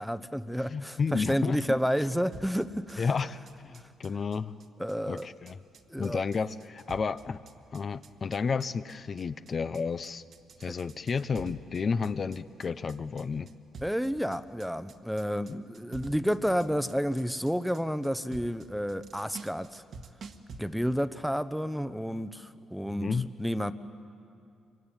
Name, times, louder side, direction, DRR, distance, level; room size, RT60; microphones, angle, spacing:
voice 1, 0.0-3.1 4.8-5.3 5.9-6.2 13.8-19.8 20.6-23.7, equal, ahead, 13 dB, 0.9 m, -30 dB
voice 2, 0.7-1.8 3.0-3.4 3.6-4.5 5.1-5.6 6.0-7.4 7.7-10.2 10.6-13.5 15.5-15.6 23.0-23.3, left 5 dB, 45° left, 12 dB, 0.7 m, -31 dB
sound 1, 2.3-20.6, right 4 dB, 60° right, 1.6 m, -49 dB
26.0 x 23.5 x 9.0 m, 2.5 s
cardioid pair, 90°, 0 cm